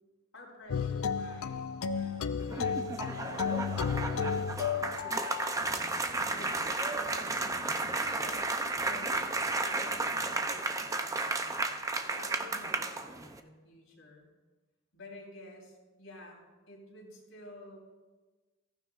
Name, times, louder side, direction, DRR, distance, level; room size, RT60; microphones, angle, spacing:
voice 1, 0.3-1.7 1.9-5.3 6.2-11.8 12.1-14.3 14.9-16.4 16.7-17.8, left 1 dB, 70° left, -2 dB, 3.8 m, -52 dB
sound 1, 0.7-5.6, left 6 dB, 85° left, 0.4 m, -33 dB
sound 2, 2.4-13.4, right 3 dB, 15° right, 0.5 m, -33 dB
sound 3, 5.5-12.0, left 2 dB, 35° left, 0.8 m, -50 dB
15.0 x 14.5 x 2.5 m, 1.3 s
head